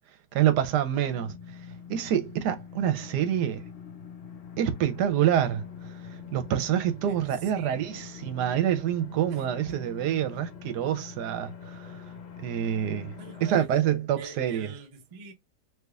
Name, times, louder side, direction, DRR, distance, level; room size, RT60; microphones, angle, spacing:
voice 1, 0.3-1.3 1.9-3.6 4.6-12.0 12.4-13.2 13.4-14.7, right 10 dB, 80° right, 1.2 m, -27 dB
sound 1, 1.1-13.6, left 6 dB, 75° left, 0.5 m, -44 dB
voice 2, 7.0-8.1 9.3-10.0 13.2-13.7 14.2-15.3, right 4 dB, 40° right, 0.5 m, -46 dB
3.4 x 2.8 x 2.3 m
omnidirectional pair, 1.8 m